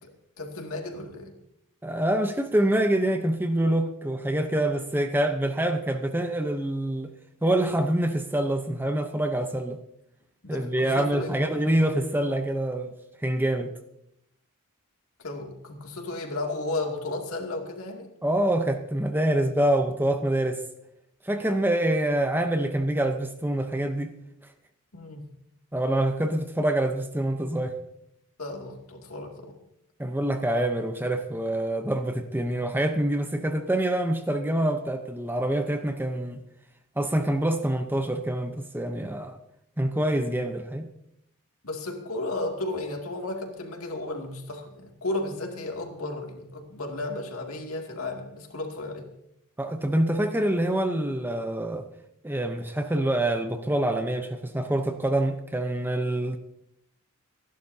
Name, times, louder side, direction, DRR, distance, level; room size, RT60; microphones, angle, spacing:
voice 1, 0.4-1.3 10.4-11.5 15.2-18.1 24.9-25.3 28.4-29.6 41.6-49.1, left 2 dB, 70° left, 2.5 m, -34 dB
voice 2, 1.8-7.1 7.4-9.8 10.5-12.9 13.2-13.7 18.2-20.6 21.2-24.1 25.7-27.8 30.0-36.4 37.0-39.4 39.8-40.9 49.6-51.9 52.2-56.4, right 1 dB, 10° right, 0.8 m, -26 dB
27.0 x 11.5 x 2.8 m
head